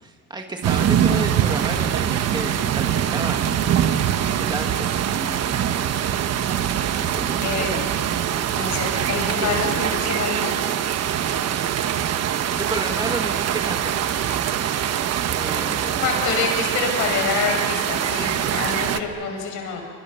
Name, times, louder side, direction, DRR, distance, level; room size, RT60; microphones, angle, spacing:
voice 1, 0.0-3.4 4.4-5.7 6.9-7.8 9.4-9.5 12.6-13.9 15.2-16.1, right 2 dB, 15° right, 3 dB, 2.0 m, -32 dB
sound 1, 0.6-19.0, right 9 dB, 55° right, 1.2 m, -23 dB
voice 2, 7.4-7.9 8.5-10.5 16.0-19.8, left 5 dB, 80° left, 2 dB, 6.3 m, -26 dB
29.5 x 25.5 x 6.8 m, 2.5 s
cardioid pair, 115°, 30 cm